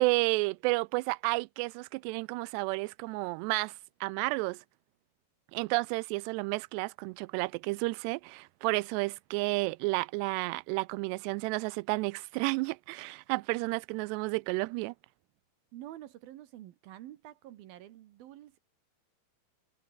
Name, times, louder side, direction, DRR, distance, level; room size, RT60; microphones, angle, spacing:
voice 1, 0.0-3.7 4.0-4.6 5.5-14.9, right 24 dB, 85° right, 2.7 m, -31 dB
voice 2, 15.7-18.6, right 13 dB, 70° right, 2.7 m, -48 dB
omnidirectional pair, 4.8 m